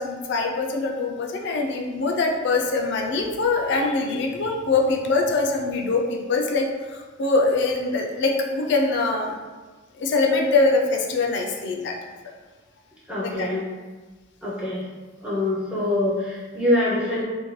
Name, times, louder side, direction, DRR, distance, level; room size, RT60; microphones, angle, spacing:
voice 1, 0.0-9.3 9.9-12.0 13.2-13.5, left 3 dB, 60° left, 1 dB, 0.3 m, -23 dB
voice 2, 13.1-13.6 14.4-14.9 15.2-17.2, left 1 dB, 5° right, -7 dB, 0.4 m, -24 dB
2.6 x 2.1 x 3.0 m, 1.3 s
head